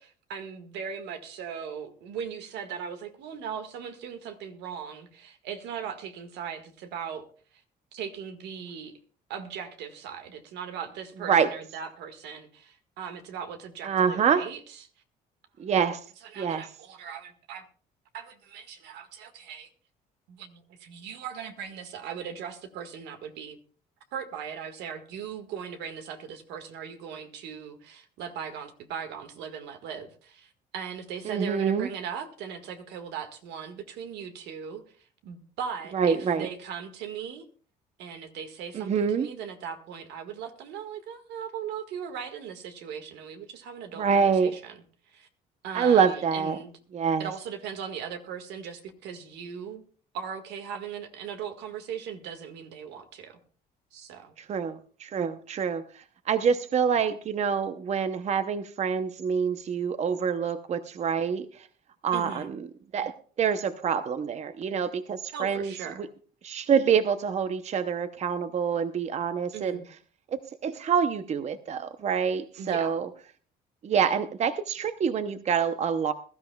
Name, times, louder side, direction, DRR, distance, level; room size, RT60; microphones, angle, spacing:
voice 1, 0.0-7.3 7.9-9.0 9.3-14.9 16.2-17.6 18.1-19.7 20.3-23.6 24.1-37.4 38.0-45.3 45.6-46.7 47.2-49.8 50.1-53.4 53.9-54.3 62.1-62.5 65.3-66.1 69.5-69.9 72.6-73.0, right 7 dB, 85° right, 7 dB, 1.8 m, -39 dB
voice 2, 13.8-14.5 15.6-16.0 16.4-16.6 31.3-31.9 35.9-36.5 38.7-39.3 44.0-44.6 45.7-46.6 46.9-47.3 54.5-55.8 56.3-61.5 62.0-62.6 62.9-63.1 63.4-65.7 66.4-69.8 70.3-73.1 73.8-76.1, right 7 dB, 40° right, 11 dB, 0.7 m, -26 dB
21.5 x 13.0 x 2.3 m, 0.42 s
cardioid pair, 110°, 17 cm